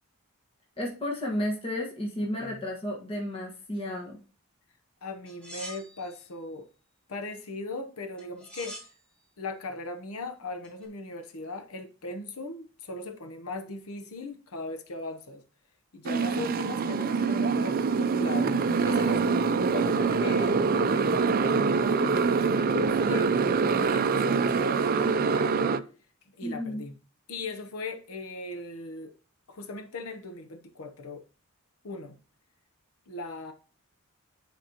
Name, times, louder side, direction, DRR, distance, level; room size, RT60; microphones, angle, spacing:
voice 1, 0.8-4.2 26.4-26.8, left 1 dB, 25° left, 1.5 m, -32 dB
voice 2, 5.0-6.7 7.1-8.8 9.4-15.4 15.9-23.4 23.8-25.8 26.4-26.9 27.3-29.1 29.5-31.2 31.8-32.2 33.1-33.5, left 3 dB, 85° left, 0.9 m, -38 dB
sound 1, 5.3-6.2 8.2-9.0 10.6-10.8, right 1 dB, 5° left, 2.2 m, -44 dB
Motorcycle, 16.1-25.8, right 5 dB, 45° right, 0.5 m, -25 dB
10.0 x 5.2 x 2.9 m
head